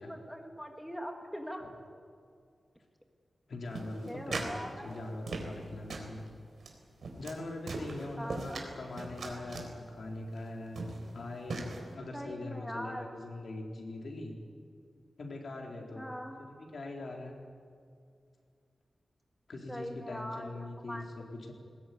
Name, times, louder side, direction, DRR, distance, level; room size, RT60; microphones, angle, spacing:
voice 1, 0.0-1.6 4.1-5.0 8.2-8.7 12.1-13.1 15.9-16.4 19.7-20.6 20.9-21.0, equal, ahead, 2 dB, 1.6 m, -41 dB
voice 2, 3.5-6.3 7.1-14.3 15.2-16.1 16.4-17.4 19.5-21.5, left 2 dB, 60° left, 0 dB, 4.0 m, -42 dB
sound 1, 3.8-4.6 4.9-5.6 5.9-6.1 6.6-6.7 7.0-7.4 7.7-8.7 9.0-9.7 10.4-10.5 10.8-11.1 11.5-11.8, right 3 dB, 75° right, 4.1 m, -39 dB
21.0 x 20.5 x 9.5 m, 2.3 s
wide cardioid pair, 170°, 0 cm